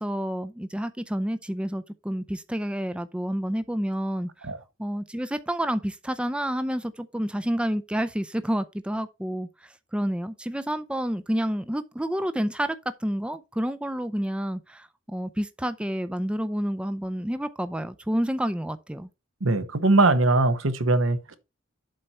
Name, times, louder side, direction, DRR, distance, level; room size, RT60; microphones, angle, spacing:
voice 1, 0.0-4.3 4.8-12.8 13.0-19.1, equal, 5° right, 0.4 m, -29 dB
voice 2, 19.4-21.4, right 2 dB, 70° right, 1.1 m, -21 dB
7.7 x 4.4 x 5.5 m
head